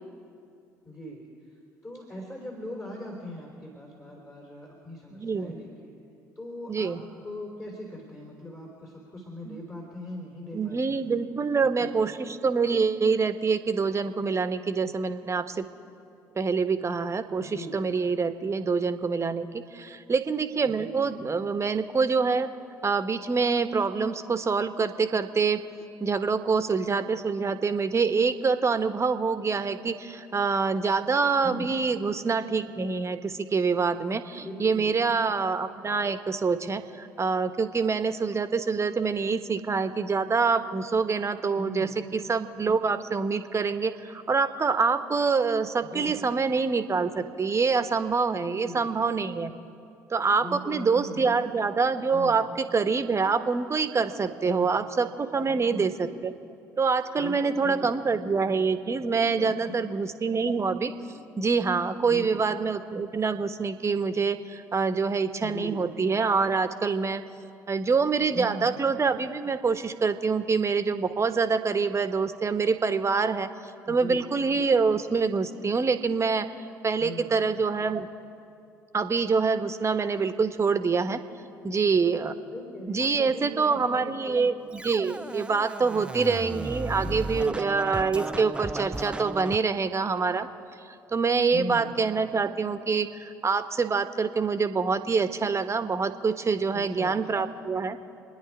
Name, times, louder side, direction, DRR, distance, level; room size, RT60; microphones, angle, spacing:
voice 1, 0.9-1.2 1.8-5.9 6.4-11.1 11.6-12.3 17.5-17.8 20.6-21.2 31.4-31.7 34.4-35.1 41.6-42.0 45.8-46.2 48.4-48.9 50.3-51.4 52.1-52.4 54.4-54.8 55.5-56.0 57.2-58.2 59.4-59.7 62.0-62.4 65.4-65.9 68.3-68.8 73.9-74.3 77.0-77.6 82.5-84.5 85.9-86.4 87.0-87.7 91.5-92.0 96.7-97.4, left 1 dB, 25° left, -2 dB, 3.9 m, -40 dB
voice 2, 5.1-5.5 6.7-7.0 9.5-9.6 10.5-15.6 16.3-22.5 22.8-25.6 26.0-49.5 50.1-56.3 56.8-60.9 61.4-67.2 67.7-73.5 73.9-76.5 76.8-78.1 78.9-81.2 81.6-82.3 82.9-90.5 91.1-98.0, right 4 dB, 30° right, 10 dB, 1.2 m, -26 dB
Scratching (performance technique), 84.7-89.6, right 2 dB, 10° right, 0.5 m, -35 dB
28.0 x 10.5 x 4.9 m, 2.5 s
hypercardioid pair, 50°, 9 cm